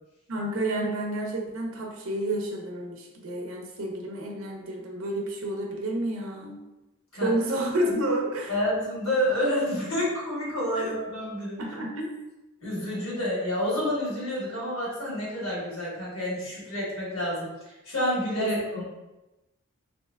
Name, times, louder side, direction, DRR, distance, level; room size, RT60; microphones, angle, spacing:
voice 1, 0.3-6.6 7.2-8.5 10.8-10.9 11.6-12.1 18.4-18.8, right 1 dB, 70° right, 0 dB, 0.6 m, -30 dB
voice 2, 8.5-11.6 12.6-18.8, equal, 70° left, -6 dB, 1.3 m, -29 dB
3.2 x 2.9 x 2.2 m, 1.0 s
head